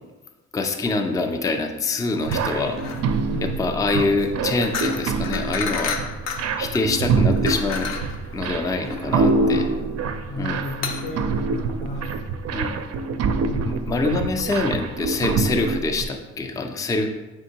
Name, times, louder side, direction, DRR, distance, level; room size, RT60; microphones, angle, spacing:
voice 1, 0.5-2.8 3.4-6.0 6.6-8.0 8.3-9.6 10.4-10.6 12.5-12.8 13.6-17.1, left 3 dB, 10° left, 5 dB, 0.3 m, -25 dB
sound 1, 2.2-12.2, left 5 dB, 60° left, 0.5 m, -33 dB
sound 2, 2.3-16.0, right 4 dB, 55° right, 0.4 m, -25 dB
voice 2, 9.3-9.9 10.3-12.1 13.4-14.0, left 1 dB, 90° left, 2 dB, 0.9 m, -33 dB
4.4 x 3.6 x 2.8 m, 1.1 s
cardioid pair, 90°, 30 cm